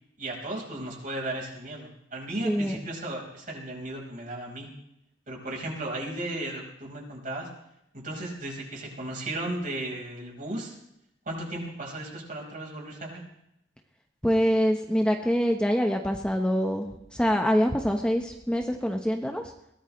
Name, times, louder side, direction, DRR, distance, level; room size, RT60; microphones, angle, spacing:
voice 1, 0.2-4.7 5.3-7.5 7.9-10.8 11.2-13.2, right 1 dB, 45° right, 0 dB, 4.9 m, -35 dB
voice 2, 2.4-2.8 14.2-19.4, equal, 5° left, 3 dB, 1.1 m, -25 dB
22.0 x 17.5 x 3.3 m, 0.80 s
head